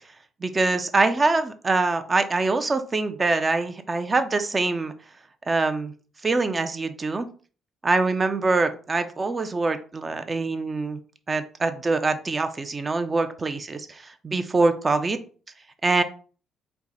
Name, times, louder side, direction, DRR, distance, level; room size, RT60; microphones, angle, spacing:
voice 1, 0.4-4.9 5.5-5.9 6.2-7.3 7.8-11.0 11.3-15.2 15.8-16.0, right 3 dB, 30° right, 9 dB, 0.6 m, -24 dB
4.6 x 2.3 x 4.0 m, 0.39 s
figure-of-eight pair, 45°, 0 cm